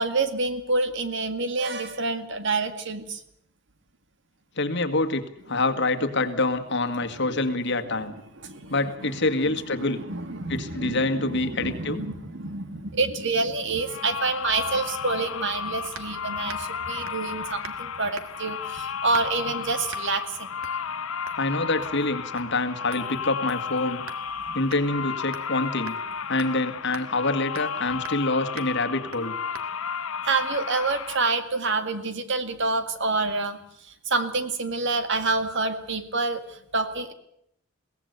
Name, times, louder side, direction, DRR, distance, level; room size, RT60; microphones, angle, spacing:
voice 1, 0.0-3.2 7.3-7.4 8.4-8.7 9.0-9.6 9.9-20.5 24.5-24.6 30.2-33.6 34.1-37.1, right 3 dB, 60° right, 9 dB, 2.0 m, -28 dB
voice 2, 4.6-5.2 5.5-8.2 8.7-10.0 10.5-12.0 21.4-24.0 24.5-26.0 26.3-29.4, left 2 dB, 55° left, 7 dB, 2.0 m, -26 dB
sound 1, 13.8-31.2, left 6 dB, 75° left, 0.9 m, -33 dB
sound 2, 15.9-16.1 16.5-16.7 17.1-17.3 17.6-17.8 18.1-18.5 19.1-19.4 19.9-20.1 20.6-20.8 21.3-21.4 21.8-22.1 22.4-22.5 22.9-24.2 24.7-24.8 25.3-25.6 25.9-26.0 26.4-26.5 26.9-27.1 27.5-27.8 28.0-28.3 28.6-28.7 29.1-29.3 29.5-29.7, right 5 dB, 75° right, 1.8 m, -42 dB
22.5 x 17.0 x 8.2 m, 0.73 s
head